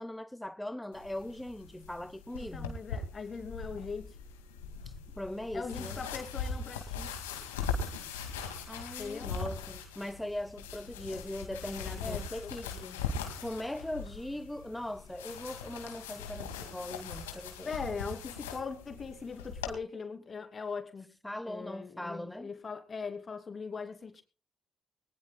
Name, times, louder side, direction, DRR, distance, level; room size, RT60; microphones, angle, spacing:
voice 1, 0.0-2.8 4.8-6.0 8.7-12.7 13.4-17.7 21.2-22.6, left 1 dB, 10° left, 0.7 m, -40 dB
sound 1, 0.9-19.7, left 5 dB, 90° left, 2.1 m, -40 dB
voice 2, 2.3-4.1 5.5-7.1 9.0-9.3 12.0-13.0 17.6-21.1 21.5-24.2, left 5 dB, 45° left, 2.7 m, -40 dB
20.5 x 19.5 x 2.3 m
hypercardioid pair, 45°, 0 cm